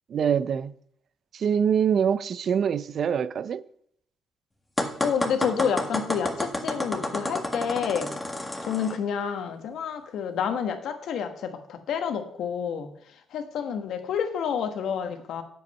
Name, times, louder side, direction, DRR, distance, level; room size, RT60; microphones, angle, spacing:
voice 1, 0.1-0.7 1.3-3.6, right 7 dB, 60° right, 0.5 m, -24 dB
sound 1, 4.8-9.0, left 1 dB, 10° left, 1.6 m, -30 dB
voice 2, 5.0-15.4, left 7 dB, 75° left, 1.3 m, -29 dB
8.5 x 7.7 x 5.4 m
cardioid pair, 90°, 0 cm